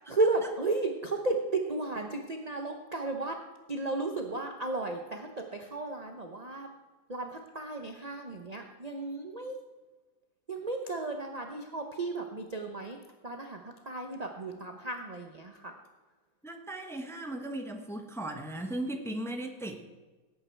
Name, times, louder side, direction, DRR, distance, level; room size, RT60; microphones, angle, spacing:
voice 1, 0.1-3.4 3.7-6.7 7.1-9.6 10.5-13.0 13.2-15.7, right 2 dB, 30° right, 3 dB, 0.7 m, -34 dB
voice 2, 16.4-19.8, right 1 dB, ahead, 4 dB, 1.0 m, -37 dB
17.5 x 8.7 x 4.6 m, 1.2 s
omnidirectional pair, 2.1 m